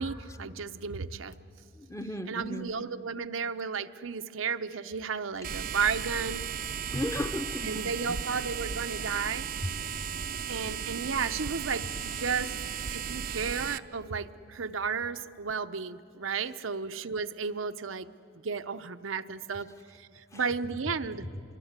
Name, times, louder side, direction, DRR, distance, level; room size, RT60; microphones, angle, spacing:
voice 1, 0.0-1.3 2.3-6.4 7.6-9.5 10.5-12.5 12.9-18.1 18.4-19.7 20.0-21.3, right 5 dB, 85° right, 9 dB, 0.8 m, -33 dB
voice 2, 1.8-2.7 6.9-8.2 8.7-9.1 9.6-9.7 20.3-20.4 21.3-21.4, left 1 dB, 15° left, 8 dB, 0.7 m, -35 dB
sound 1, 5.4-13.8, right 7 dB, 45° right, 0.5 m, -35 dB
26.0 x 23.0 x 8.1 m, 2.7 s
head